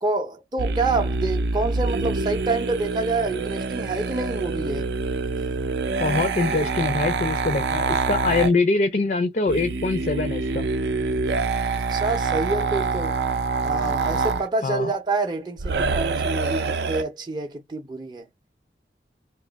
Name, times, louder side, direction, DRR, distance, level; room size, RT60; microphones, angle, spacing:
voice 1, 0.0-4.9 11.9-13.2 13.6-18.2, right 3 dB, 25° right, 0.5 m, -27 dB
sound 1, 0.6-8.5 9.5-14.5 15.6-17.0, right 4 dB, 75° right, 0.5 m, -26 dB
voice 2, 6.0-10.6 14.6-14.9, left 3 dB, 45° left, 0.4 m, -23 dB
2.8 x 2.3 x 3.9 m
head